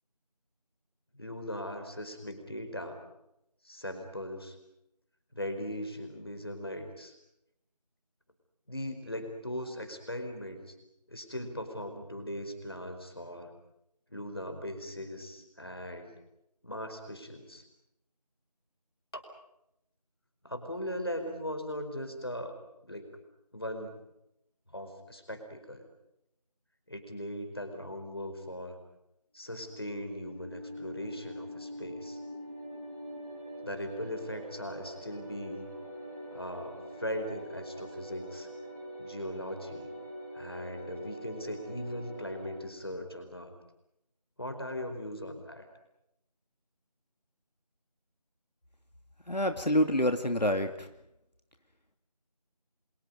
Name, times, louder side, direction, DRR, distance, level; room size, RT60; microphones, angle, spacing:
voice 1, 1.2-3.0 3.6-4.6 5.3-7.1 8.7-10.7 11.1-13.5 14.1-16.1 16.6-17.6 19.1-19.2 20.4-22.6 22.8-23.1 23.5-24.0 24.7-25.8 26.9-28.8 29.3-32.2 33.6-35.7 36.3-38.5 39.0-39.9 40.3-43.5 44.4-45.7, equal, 35° left, 6 dB, 4.6 m, -39 dB
sound 1, 29.5-42.5, equal, 10° left, 7.6 m, -43 dB
voice 2, 49.3-50.9, equal, 90° left, 6 dB, 2.5 m, -27 dB
29.5 x 26.5 x 5.3 m, 0.83 s
figure-of-eight pair, 175°, 21 cm